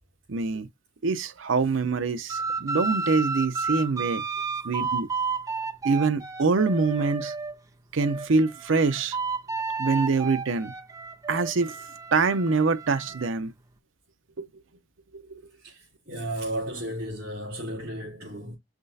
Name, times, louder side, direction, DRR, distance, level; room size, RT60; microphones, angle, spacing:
voice 1, 0.3-0.7 1.0-4.2 4.6-5.1 5.8-7.3 7.9-9.2 9.8-10.7 11.3-11.8 12.1-13.5 14.4-14.5 15.1-15.4, right 4 dB, 85° right, 0.6 m, -25 dB
sound 1, 2.3-7.6 8.0-13.3, right 4 dB, 20° right, 0.6 m, -32 dB
voice 2, 15.6-18.6, right 1 dB, 50° right, 3.1 m, -34 dB
6.0 x 3.2 x 2.7 m
head